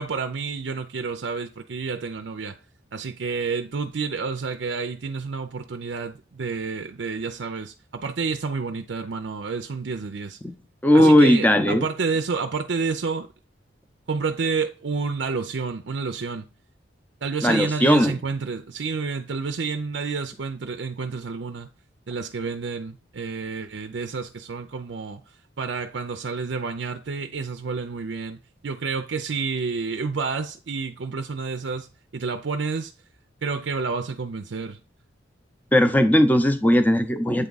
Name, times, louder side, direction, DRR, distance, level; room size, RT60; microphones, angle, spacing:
voice 1, 0.0-2.6 2.9-10.4 10.9-13.3 14.1-16.5 17.2-21.7 22.1-25.2 25.6-28.4 28.6-31.9 32.1-32.9 33.4-34.8, right 4 dB, 70° right, 0.5 m, -29 dB
voice 2, 10.8-11.9 17.4-18.2 35.7-37.5, left 1 dB, 10° left, 0.6 m, -17 dB
8.0 x 3.5 x 3.9 m
head